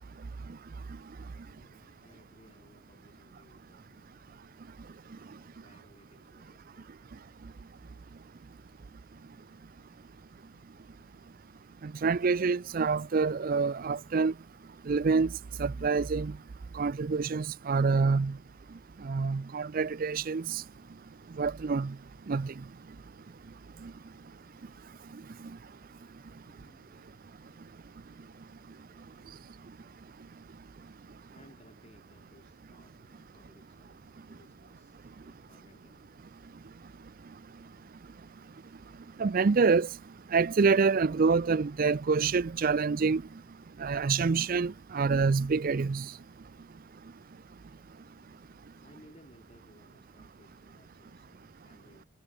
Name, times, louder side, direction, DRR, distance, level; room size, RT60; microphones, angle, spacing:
voice 1, 1.2-4.5 5.1-7.2 26.3-27.3 31.3-36.1 48.8-52.1, left 1 dB, 30° left, 7.3 m, -62 dB
voice 2, 11.8-14.3 14.9-15.3 15.6-16.4 16.7-18.4 19.0-20.6 21.4-22.0 22.3-22.5 23.8-23.9 39.2-39.9 40.3-43.2 43.8-46.1, right 4 dB, 40° right, 0.4 m, -26 dB
head